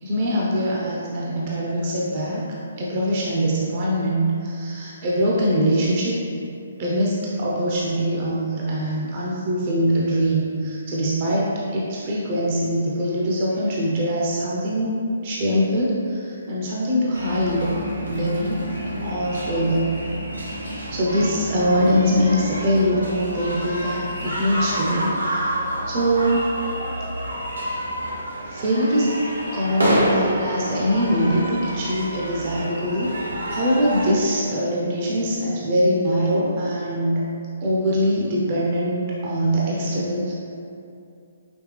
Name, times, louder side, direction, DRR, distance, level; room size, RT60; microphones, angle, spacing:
voice 1, 0.0-2.4 2.8-6.2 6.8-17.7 18.1-18.6 19.0-19.9 20.9-25.5 25.9-26.5 28.5-29.2 29.5-33.1 33.5-37.2 37.6-40.4, equal, 40° right, -5 dB, 0.8 m, -23 dB
sound 1, 17.1-34.1, equal, 90° right, 1.3 m, -28 dB
5.2 x 3.1 x 3.3 m, 2.6 s
figure-of-eight pair, 135°, 0 cm